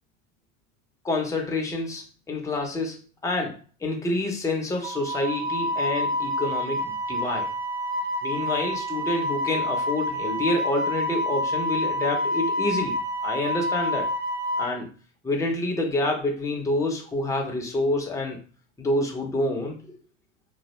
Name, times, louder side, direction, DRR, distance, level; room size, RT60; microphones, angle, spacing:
voice 1, 1.0-7.5 8.2-13.0 13.2-14.1 14.6-14.9 15.2-18.4 18.8-20.0, left 2 dB, 10° left, 1 dB, 0.5 m, -28 dB
Wind instrument woodwind instrument, 4.8-14.7, left 1 dB, 50° right, 0.8 m, -28 dB
2.3 x 2.1 x 2.9 m, 0.37 s
supercardioid pair, 115°, 39 cm